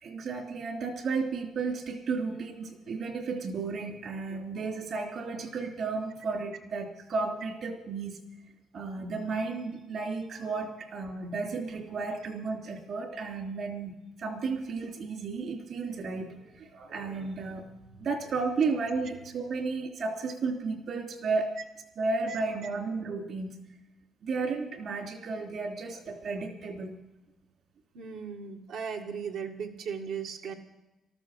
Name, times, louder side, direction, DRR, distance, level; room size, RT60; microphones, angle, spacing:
voice 1, 0.0-8.2 8.7-13.9 14.2-17.7 18.0-21.5 22.0-23.5 24.2-27.0, right 4 dB, 65° right, 2 dB, 3.0 m, -33 dB
voice 2, 27.9-30.5, right 6 dB, 85° right, 2 dB, 1.6 m, -37 dB
13.5 x 13.5 x 6.5 m, 0.99 s
cardioid pair, 90°, 0 cm